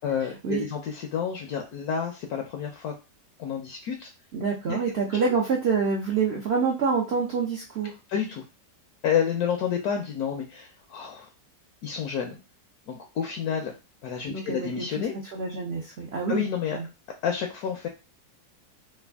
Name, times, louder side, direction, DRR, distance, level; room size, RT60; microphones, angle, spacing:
voice 1, 0.0-2.9 3.4-4.1 4.7-4.8 5.1-5.2 8.1-8.4 9.0-11.3 11.8-12.4 12.9-13.7 14.0-15.1 16.3-16.8 17.2-17.9, left 8 dB, 70° left, 3 dB, 1.0 m, -29 dB
voice 2, 4.3-7.9 14.3-14.8 15.3-16.4 16.7-16.8, right 5 dB, 70° right, -2 dB, 0.6 m, -26 dB
3.3 x 2.2 x 3.4 m, 0.28 s
omnidirectional pair, 1.9 m